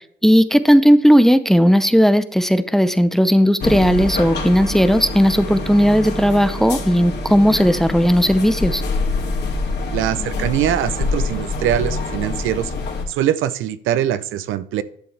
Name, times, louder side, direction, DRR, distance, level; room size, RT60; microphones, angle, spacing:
voice 1, 0.0-8.8, equal, ahead, 13 dB, 0.6 m, -15 dB
sound 1, 3.6-13.0, left 2 dB, 55° left, 2.5 m, -25 dB
voice 2, 9.9-12.7 13.1-14.8, right 11 dB, 85° right, 15 dB, 0.6 m, -22 dB
11.0 x 6.9 x 3.3 m, 0.65 s
cardioid pair, 90°, 20 cm